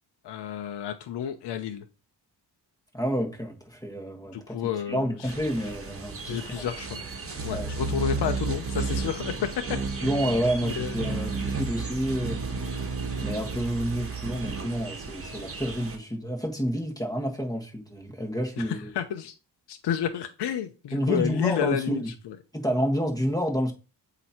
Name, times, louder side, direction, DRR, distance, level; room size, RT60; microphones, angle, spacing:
voice 1, 0.2-1.9 4.3-5.3 5.6-5.7 6.3-7.0 7.4-9.3 10.2-10.3 10.6-11.2 18.6-19.3 19.7-22.4, left 9 dB, 70° left, 0.8 m, -31 dB
voice 2, 2.9-4.5 4.9-6.7 7.5-7.7 10.0-12.4 13.2-18.9 20.9-22.1 22.5-23.7, equal, 10° left, 1.7 m, -29 dB
sound 1, 5.2-16.0, right 4 dB, 30° right, 1.4 m, -33 dB
7.8 x 3.0 x 4.4 m
cardioid pair, 80°, 42 cm